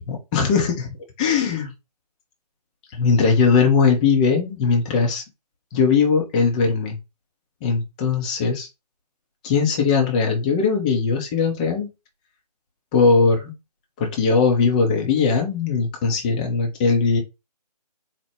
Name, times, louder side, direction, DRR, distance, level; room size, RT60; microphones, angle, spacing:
voice 1, 0.0-1.7 2.9-5.2 5.7-7.0 7.6-8.7 9.4-11.9 12.9-13.5 14.0-17.2, left 5 dB, 10° left, 2 dB, 0.5 m, -20 dB
4.3 x 2.1 x 4.5 m, 0.25 s
figure-of-eight pair, 150°, 21 cm